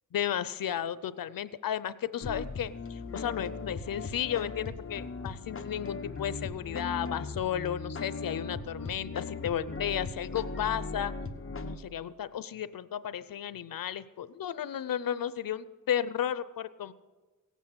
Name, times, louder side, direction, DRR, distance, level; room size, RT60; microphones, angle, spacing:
voice 1, 0.1-11.1 11.6-16.9, left 10 dB, 90° left, 15 dB, 0.7 m, -33 dB
sound 1, 2.2-11.8, left 4 dB, 40° left, 1.2 m, -38 dB
17.5 x 8.3 x 7.4 m, 1.3 s
wide cardioid pair, 100°, 33 cm